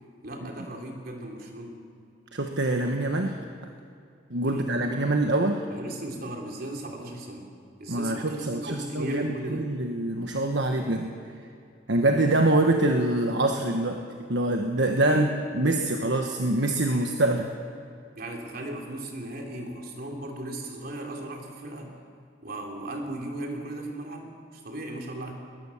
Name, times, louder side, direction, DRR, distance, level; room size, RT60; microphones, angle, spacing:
voice 1, 0.2-1.8 4.4-4.7 5.7-7.5 7.8-9.7 12.1-12.3 15.1-15.3 18.2-21.9 22.4-25.3, right 1 dB, 55° right, 1 dB, 3.5 m, -36 dB
voice 2, 2.3-3.4 4.3-5.7 7.9-11.1 11.9-17.5, right 2 dB, 70° right, 3 dB, 1.4 m, -25 dB
21.0 x 19.5 x 7.3 m, 2.5 s
head